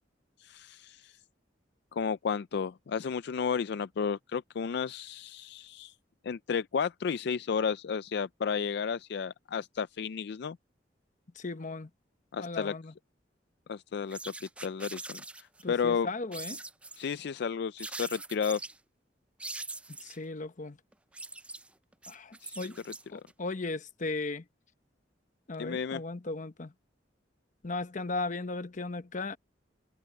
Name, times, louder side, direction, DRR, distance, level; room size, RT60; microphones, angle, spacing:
voice 1, 0.4-1.2 1.9-5.9 6.2-10.6 12.3-12.7 13.7-14.2 14.6-16.1 17.0-18.6 22.4-22.6 25.6-26.0, left 6 dB, 65° left, 0.4 m, -32 dB
voice 2, 11.4-11.9 12.4-12.9 15.6-16.6 20.0-20.8 22.1-22.8 23.1-24.4 25.5-26.7 27.6-29.4, left 3 dB, 45° left, 0.9 m, -36 dB
sound 1, 14.1-15.6 16.3-17.1 17.8-18.8 19.4-20.2 20.9-23.3, right 2 dB, 5° right, 0.3 m, -42 dB
head